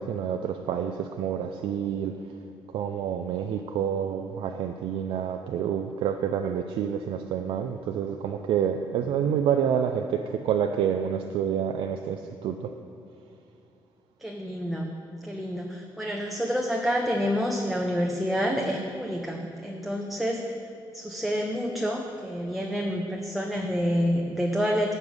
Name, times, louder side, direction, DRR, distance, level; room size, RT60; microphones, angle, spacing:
voice 1, 0.0-2.1 2.7-12.7, right 8 dB, 80° right, 5 dB, 0.5 m, -28 dB
voice 2, 14.2-20.6 20.9-25.0, equal, ahead, 1 dB, 0.6 m, -28 dB
13.5 x 5.4 x 8.1 m, 2.4 s
cardioid pair, 175°, 9 cm